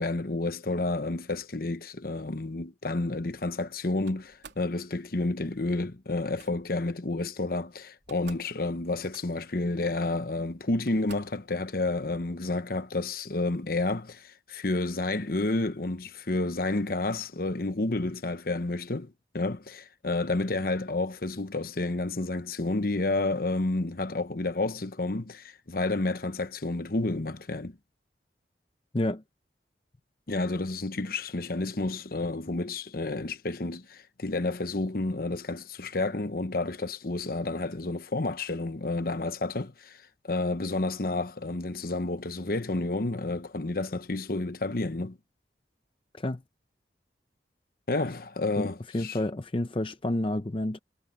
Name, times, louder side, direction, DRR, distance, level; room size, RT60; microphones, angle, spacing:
voice 1, 0.0-27.8 30.3-45.2 47.9-49.2, left 2 dB, 55° left, 1.0 m, -30 dB
Slam, 4.1-4.7 6.1-6.5 7.6-7.7 7.9-8.5 8.8-9.5 10.3-10.4 10.9-11.4, right 5 dB, 75° right, 3.1 m, -51 dB
voice 2, 48.9-50.8, left 1 dB, 30° left, 0.6 m, -29 dB
head